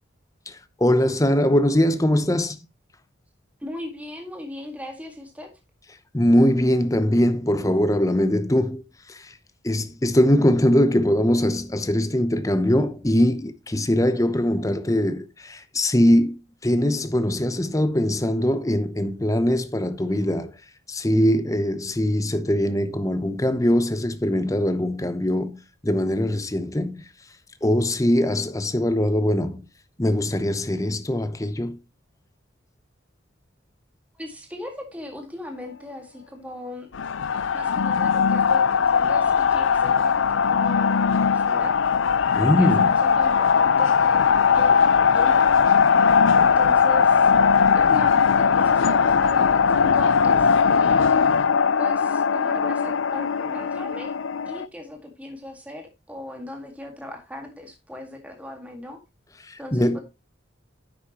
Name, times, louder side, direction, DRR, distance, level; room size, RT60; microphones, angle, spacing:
voice 1, 0.5-2.6 6.1-9.4 9.6-20.6 20.9-27.1 27.6-29.7 30.0-31.8 42.4-42.9 59.4-60.0, left 1 dB, 15° left, 0.8 m, -22 dB
voice 2, 3.6-5.5 34.1-36.9 37.5-41.8 42.4-44.3 44.5-45.7 46.4-47.3 47.7-51.2 51.8-54.1 54.5-59.0 59.6-60.0, left 1 dB, 5° right, 1.9 m, -38 dB
sound 1, 36.9-54.7, left 6 dB, 75° left, 0.5 m, -19 dB
10.0 x 8.3 x 3.0 m
head